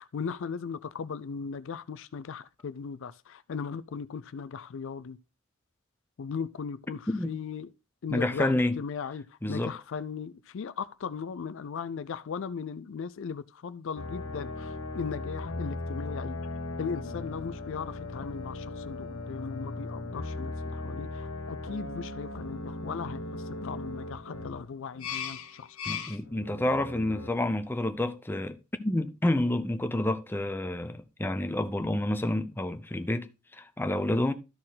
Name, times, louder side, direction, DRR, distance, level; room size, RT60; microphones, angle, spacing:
voice 1, 0.0-5.2 6.2-7.7 8.0-16.4 16.8-26.1, left 6 dB, 65° left, 0.4 m, -38 dB
voice 2, 8.1-8.8 9.4-9.7 25.9-34.3, left 1 dB, 10° left, 0.6 m, -29 dB
sound 1, 13.9-27.3, left 2 dB, 90° left, 1.0 m, -38 dB
12.5 x 4.3 x 3.9 m
head